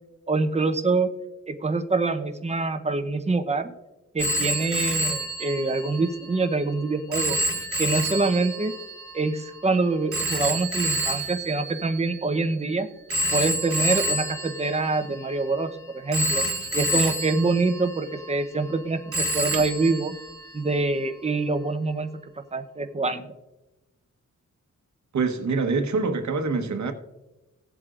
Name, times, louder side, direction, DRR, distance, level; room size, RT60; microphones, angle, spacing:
voice 1, 0.3-1.1 1.5-3.7 4.1-7.4 7.8-8.7 9.1-12.9 13.3-16.4 16.7-20.1 20.5-22.1 22.5-23.3, right 3 dB, 20° right, 0.8 m, -25 dB
Telephone, 4.2-12.5 13.1-15.6 16.1-18.8 19.1-20.8, right 1 dB, 50° right, 1.3 m, -29 dB
voice 2, 25.1-26.9, right 4 dB, 70° right, 1.2 m, -25 dB
18.0 x 7.8 x 2.5 m
wide cardioid pair, 105°, 30 cm